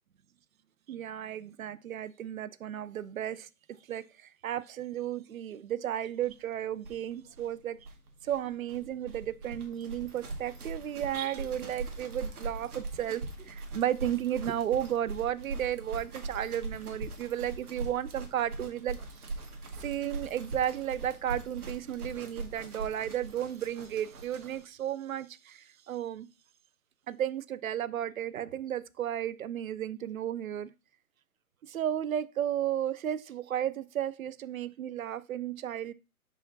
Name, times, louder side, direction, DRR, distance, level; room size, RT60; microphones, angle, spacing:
voice 1, 0.9-3.5 3.9-4.0 4.4-7.8 8.2-19.0 19.8-26.3 27.1-30.7 31.6-35.9, right 11 dB, 65° right, 0.5 m, -33 dB
sound 1, 6.2-6.3 6.5-6.6 6.8-24.7, right 3 dB, 85° right, 1.7 m, -41 dB
5.7 x 4.8 x 3.9 m
hypercardioid pair, 175°, 44 cm